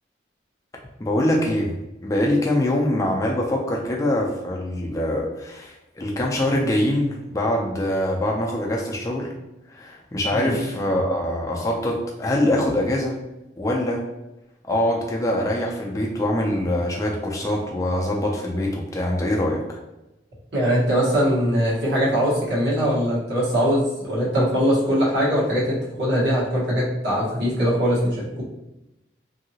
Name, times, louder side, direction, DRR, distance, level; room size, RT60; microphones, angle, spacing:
voice 1, 1.0-1.7 2.0-9.3 9.7-13.2 13.6-14.0 14.6-19.8, left 1 dB, 20° left, -1 dB, 0.4 m, -24 dB
voice 2, 20.5-28.4, equal, 75° right, -6 dB, 1.3 m, -21 dB
2.9 x 2.7 x 2.7 m, 0.93 s
head